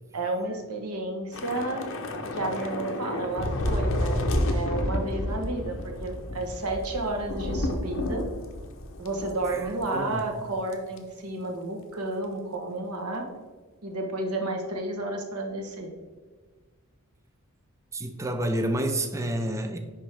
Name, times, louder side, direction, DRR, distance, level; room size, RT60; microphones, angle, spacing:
voice 1, 0.1-1.9 2.3-8.3 9.0-13.3 13.8-15.9, right 2 dB, 90° right, 1.1 m, -31 dB
Thunder / Rain, 1.3-9.9 10.2-10.4 10.7-11.0, left 1 dB, 60° left, 0.8 m, -30 dB
voice 2, 9.5-10.3 17.9-19.8, right 1 dB, 15° right, 0.4 m, -29 dB
10.0 x 3.6 x 3.4 m
head